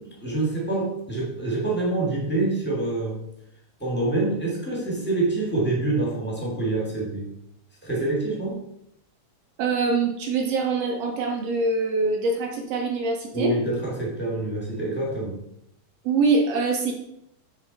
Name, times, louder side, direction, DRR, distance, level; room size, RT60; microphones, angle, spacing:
voice 1, 0.0-3.2 3.8-7.3 7.8-8.6 13.3-15.4, right 2 dB, 15° left, -4 dB, 0.4 m, -26 dB
voice 2, 9.6-13.5 16.0-16.9, right 3 dB, 70° right, 2 dB, 1.6 m, -24 dB
8.7 x 3.5 x 3.9 m, 0.77 s
omnidirectional pair, 3.5 m